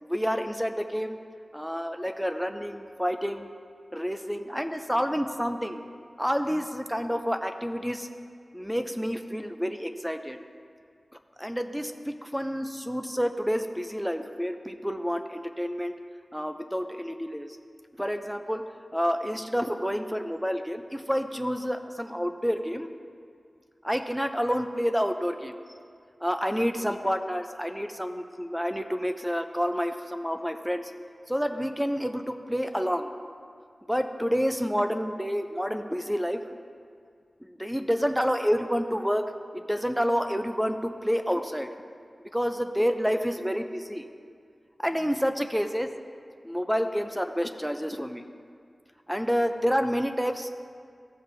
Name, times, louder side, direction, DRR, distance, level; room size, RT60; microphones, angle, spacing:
voice 1, 0.0-1.2 1.5-3.5 3.9-5.8 6.2-8.1 8.5-10.4 11.4-15.9 16.3-17.6 18.0-18.6 18.9-22.9 23.8-25.5 26.2-30.9 31.3-33.1 33.9-36.4 37.5-39.3 39.5-41.7 42.3-44.0 44.8-45.9 46.4-48.2 49.1-50.5, equal, ahead, 7 dB, 0.4 m, -29 dB
15.0 x 7.0 x 2.6 m, 2.2 s
wide cardioid pair, 100°, 0 cm